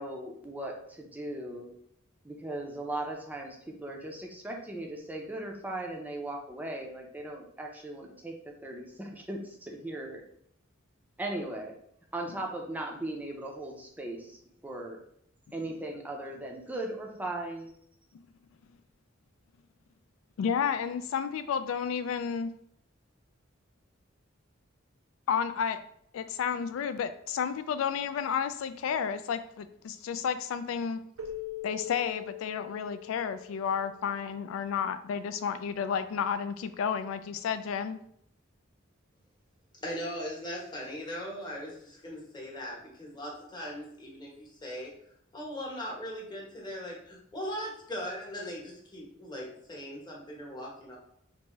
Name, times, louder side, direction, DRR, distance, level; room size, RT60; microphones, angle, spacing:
voice 1, 0.0-1.7 2.2-8.3 8.6-10.2 11.2-11.8 12.1-15.0 15.5-17.7, right 1 dB, 10° right, 0 dB, 0.5 m, -38 dB
voice 2, 20.4-22.5 25.3-25.8 26.1-31.0 31.6-38.0, left 7 dB, 75° left, 10 dB, 0.3 m, -31 dB
Keyboard (musical), 31.2-34.4, left 10 dB, 90° right, 0.5 m, -42 dB
voice 3, 39.8-44.9 45.3-51.0, equal, 20° left, -3 dB, 1.0 m, -39 dB
3.4 x 2.6 x 3.0 m, 0.70 s
head